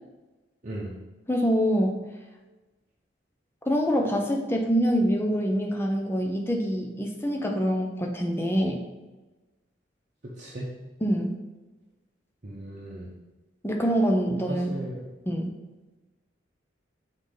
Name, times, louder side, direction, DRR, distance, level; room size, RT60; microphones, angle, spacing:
voice 1, 1.3-2.0 3.7-8.8 11.0-11.3 13.6-14.7 15.3-15.5, equal, 15° left, 2 dB, 0.7 m, -25 dB
voice 2, 10.4-10.7 12.4-13.1 14.5-15.0, right 1 dB, 40° right, -5 dB, 0.9 m, -36 dB
6.8 x 4.0 x 3.9 m, 1.1 s
head